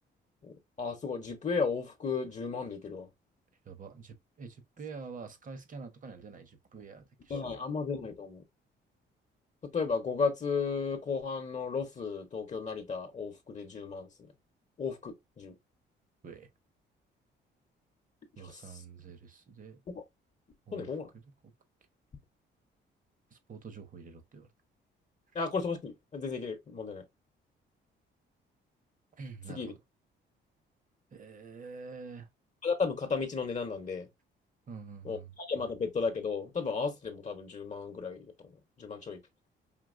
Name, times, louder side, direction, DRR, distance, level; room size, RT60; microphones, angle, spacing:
voice 1, 0.8-3.1 7.3-8.4 9.6-14.1 14.8-15.6 18.4-18.8 19.9-20.0 20.7-21.1 25.3-27.0 29.5-29.7 32.6-34.1 35.0-38.3 38.8-39.2, left 5 dB, 35° left, 0.9 m, -34 dB
voice 2, 3.7-7.5 16.2-16.5 18.4-19.8 20.7-20.9 21.4-21.5 23.3-24.5 29.2-29.6 31.1-32.3 34.7-35.3, right 5 dB, 40° right, 1.0 m, -46 dB
5.2 x 2.8 x 2.5 m
cardioid pair, 90°, 20 cm